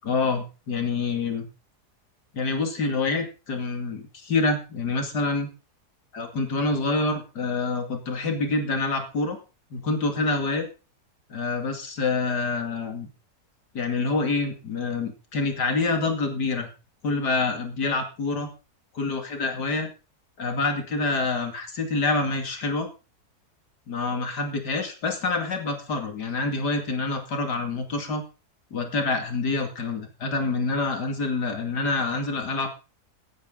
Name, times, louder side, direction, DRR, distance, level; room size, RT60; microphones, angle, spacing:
voice 1, 0.0-1.5 2.3-5.5 6.1-9.4 9.7-10.7 11.3-13.1 13.7-16.7 17.0-18.5 18.9-19.9 20.4-22.9 23.9-28.2 28.7-32.7, left 3 dB, 85° left, 5 dB, 3.0 m, -26 dB
17.5 x 11.0 x 3.9 m, 0.33 s
omnidirectional pair, 1.7 m